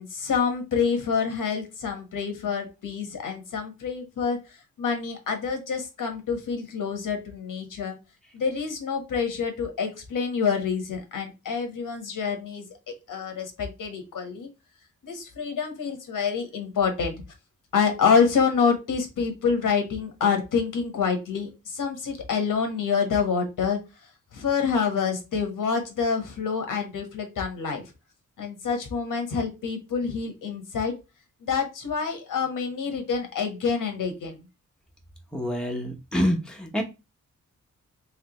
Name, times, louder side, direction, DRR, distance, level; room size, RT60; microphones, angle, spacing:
voice 1, 0.0-4.4 4.8-8.0 8.3-12.6 13.1-14.5 15.0-17.1 17.7-23.8 24.3-27.8 28.4-31.0 31.4-34.4, left 6 dB, 80° left, 5 dB, 1.3 m, -27 dB
voice 2, 35.3-36.8, equal, ahead, 1 dB, 0.9 m, -26 dB
3.3 x 3.2 x 3.0 m, 0.27 s
wide cardioid pair, 135°, 31 cm